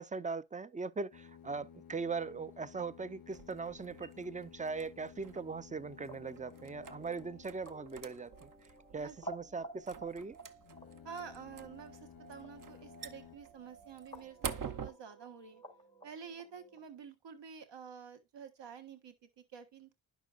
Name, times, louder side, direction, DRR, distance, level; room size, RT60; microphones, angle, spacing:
voice 1, 0.0-8.5 8.9-10.4, right 4 dB, 20° right, 0.4 m, -40 dB
sound 1, 1.1-7.9 10.6-13.4, left 9 dB, 50° left, 0.7 m, -55 dB
sound 2, 3.3-14.9, right 7 dB, 45° right, 0.8 m, -48 dB
sound 3, 5.8-16.9, right 2 dB, 10° left, 2.8 m, -53 dB
voice 2, 11.0-15.6 16.0-19.9, right 6 dB, 65° right, 1.4 m, -49 dB
10.0 x 6.1 x 2.4 m
cardioid pair, 75°, 46 cm